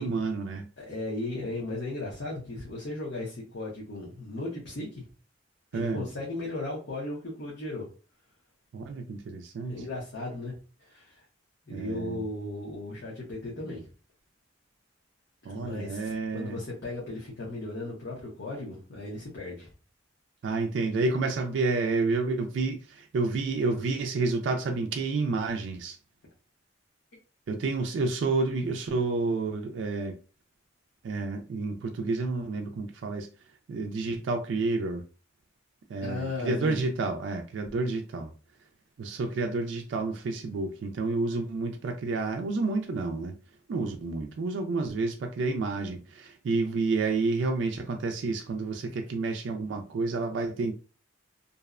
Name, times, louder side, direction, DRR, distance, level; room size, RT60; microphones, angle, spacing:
voice 1, 0.0-0.7 5.7-6.0 8.7-9.8 11.7-12.2 15.5-16.6 20.4-26.0 27.5-30.2 31.0-33.3 33.7-35.0 35.9-38.3 39.0-43.3 43.7-50.7, right 3 dB, 65° right, 0.3 m, -30 dB
voice 2, 0.8-5.1 5.7-7.9 9.7-11.3 11.7-13.9 15.4-19.7 36.0-36.8, left 2 dB, 60° left, 0.8 m, -36 dB
2.6 x 2.1 x 2.4 m
head